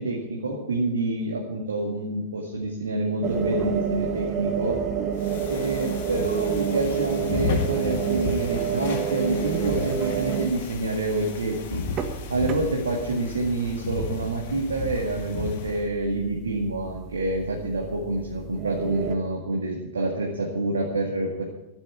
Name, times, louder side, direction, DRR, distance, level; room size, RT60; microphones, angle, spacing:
voice 1, 0.0-4.8 5.5-11.9 12.3-21.4, right 2 dB, 70° right, 0 dB, 2.0 m, -27 dB
sound 1, 3.2-19.2, right 8 dB, 35° right, 1.4 m, -30 dB
sound 2, 5.2-15.9, left 4 dB, 55° left, 2.1 m, -34 dB
13.0 x 8.3 x 8.6 m, 0.90 s
figure-of-eight pair, 90°, 0 cm